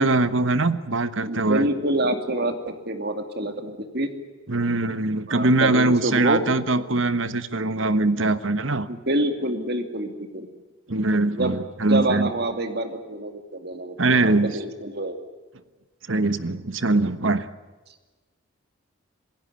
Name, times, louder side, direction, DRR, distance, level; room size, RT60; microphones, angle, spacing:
voice 1, 0.0-1.6 4.5-8.9 10.9-12.3 14.0-14.6 16.1-17.5, right 2 dB, 70° right, 13 dB, 1.3 m, -22 dB
voice 2, 1.3-4.1 5.3-6.4 8.9-10.5 11.2-11.6 11.9-15.2, right 1 dB, 50° right, 7 dB, 2.7 m, -26 dB
27.5 x 16.0 x 9.8 m, 1.2 s
head